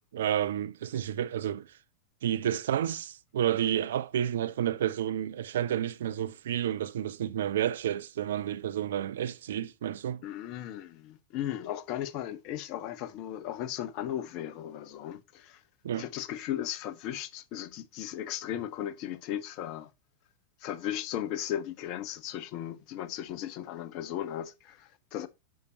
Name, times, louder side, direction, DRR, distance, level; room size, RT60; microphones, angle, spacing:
voice 1, 0.1-1.7 2.2-10.2 15.8-16.1, right 10 dB, 60° right, 0.5 m, -30 dB
voice 2, 10.2-15.6 15.9-19.9 20.6-25.3, left 11 dB, 40° left, 0.8 m, -36 dB
9.4 x 6.7 x 2.7 m
figure-of-eight pair, 90°, 0 cm